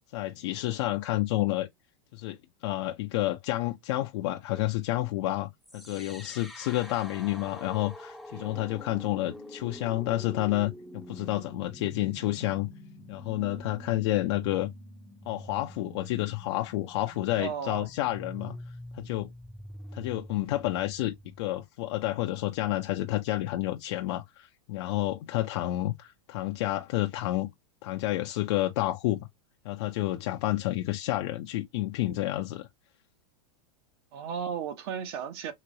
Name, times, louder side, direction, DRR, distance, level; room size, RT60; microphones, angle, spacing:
voice 1, 0.1-1.7 2.1-2.4 2.6-12.7 13.1-14.7 15.3-18.6 18.9-19.3 19.9-27.5 27.8-29.2 29.6-32.7, left 16 dB, 65° left, 0.5 m, -30 dB
sound 1, 5.6-21.6, equal, ahead, 0.6 m, -46 dB
voice 2, 8.3-8.7 17.4-17.9 34.1-35.5, right 7 dB, 60° right, 0.9 m, -35 dB
2.9 x 2.9 x 2.6 m
supercardioid pair, 135°, 15 cm